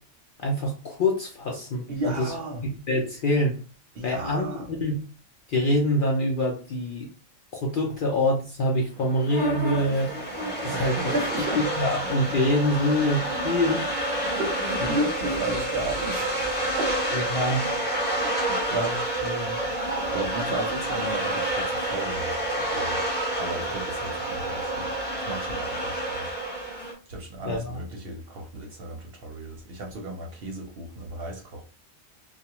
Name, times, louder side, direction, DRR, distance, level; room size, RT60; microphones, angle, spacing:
voice 1, 0.4-2.3 2.6-3.6 4.0-5.0 5.5-7.1 7.6-10.1 10.6-11.1 11.8-13.9 17.3-17.6 27.5-27.8, left 1 dB, 60° left, 0.6 m, -25 dB
voice 2, 1.9-2.7 3.9-4.7 7.9-8.0 10.7-11.8 12.3-12.6 14.3-17.1 18.2-23.0 23.4-24.9 25.3-31.6, right 1 dB, 60° right, 0.8 m, -34 dB
sound 1, 9.0-26.9, right 1 dB, 10° left, 0.7 m, -29 dB
2.3 x 2.2 x 2.9 m
omnidirectional pair, 1.3 m